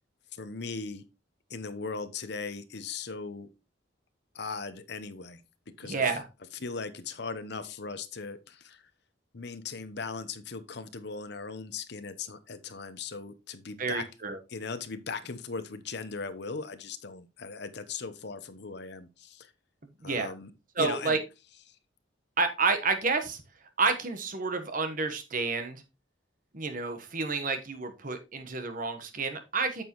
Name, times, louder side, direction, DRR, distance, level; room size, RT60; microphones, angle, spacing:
voice 1, 0.3-1.0 1.5-3.5 4.3-5.4 5.8-6.0 6.6-8.9 9.3-14.1 14.5-19.5 20.0-20.5 20.8-21.2 21.7-21.8, left 4 dB, 60° left, 11 dB, 0.8 m, -38 dB
voice 2, 5.8-6.2 13.8-14.4 20.0-20.3 20.8-21.2 22.4-23.4 23.8-25.8 26.5-29.8, right 4 dB, 45° right, 8 dB, 1.2 m, -29 dB
8.9 x 6.3 x 3.0 m, 0.27 s
head